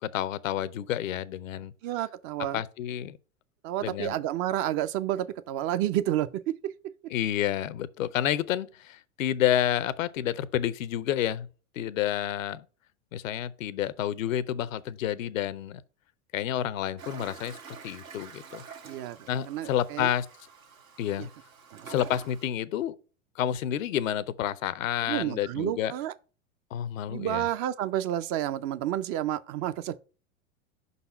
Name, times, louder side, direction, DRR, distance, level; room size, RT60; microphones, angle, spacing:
voice 1, 0.0-1.7 2.5-3.2 3.8-4.1 7.1-11.5 11.7-12.6 13.1-15.8 16.3-18.6 19.3-20.3 21.0-21.3 21.9-22.9 23.4-25.9 26.7-27.4, left 11 dB, 75° left, 0.6 m, -29 dB
voice 2, 1.8-2.6 3.6-6.9 18.8-20.1 21.2-21.3 21.7-21.9 25.1-26.1 27.1-30.0, right 12 dB, 35° right, 0.4 m, -30 dB
Toilet flush, 17.0-22.5, right 6 dB, 85° right, 1.3 m, -47 dB
5.5 x 4.1 x 5.4 m
hypercardioid pair, 95°, 40 cm